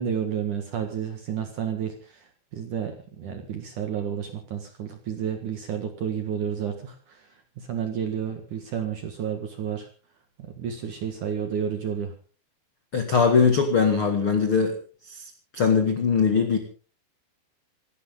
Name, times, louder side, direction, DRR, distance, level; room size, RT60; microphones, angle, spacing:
voice 1, 0.0-7.3 7.6-9.9 10.4-12.1, right 8 dB, 60° right, 6 dB, 2.2 m, -31 dB
voice 2, 12.9-14.7 15.1-15.2 15.5-16.6, left 5 dB, 80° left, 5 dB, 1.2 m, -21 dB
27.0 x 12.0 x 3.8 m, 0.38 s
omnidirectional pair, 5.8 m